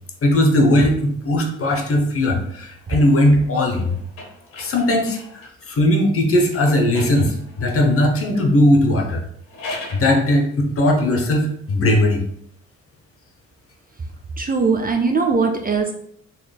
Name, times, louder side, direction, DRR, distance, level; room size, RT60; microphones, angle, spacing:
voice 1, 0.2-4.0 4.6-9.2 9.9-12.2, left 1 dB, 40° left, 2 dB, 0.9 m, -18 dB
sound 1, 1.6-5.6 6.5-7.8 9.3-10.1, left 2 dB, 80° left, 1.1 m, -39 dB
voice 2, 14.4-15.9, right 4 dB, 25° right, 4 dB, 0.6 m, -20 dB
4.1 x 3.1 x 2.3 m, 0.71 s
supercardioid pair, 60°, 33 cm